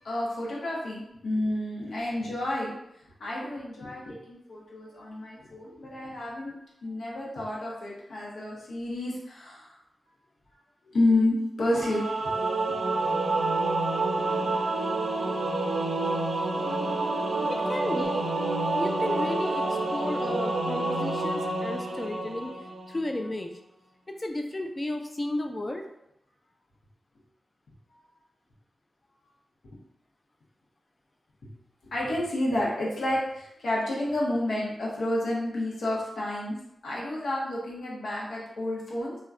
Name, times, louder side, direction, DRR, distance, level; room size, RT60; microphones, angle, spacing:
voice 1, 0.0-2.7 3.2-6.5 6.8-9.8 10.8-12.3 31.4-31.5 31.9-36.5 36.8-39.1, left 1 dB, 90° left, -5 dB, 0.8 m, -30 dB
Singing / Musical instrument, 11.7-23.0, right 2 dB, 75° right, 0.5 m, -28 dB
voice 2, 17.5-18.3 18.8-22.5 22.9-23.5 24.1-25.8, left 1 dB, 25° left, 4 dB, 0.4 m, -33 dB
2.2 x 2.1 x 3.5 m, 0.81 s
wide cardioid pair, 90°, 0 cm